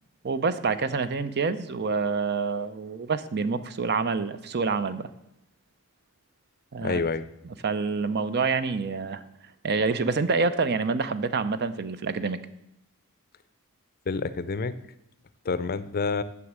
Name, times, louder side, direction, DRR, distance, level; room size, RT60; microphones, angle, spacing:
voice 1, 0.2-5.1 6.7-7.0 7.6-9.2 9.6-12.4, right 4 dB, 50° right, 13 dB, 0.6 m, -27 dB
voice 2, 6.8-7.3 14.1-14.7 15.5-16.2, left 4 dB, 45° left, 14 dB, 0.5 m, -28 dB
9.7 x 7.0 x 7.3 m, 0.83 s
head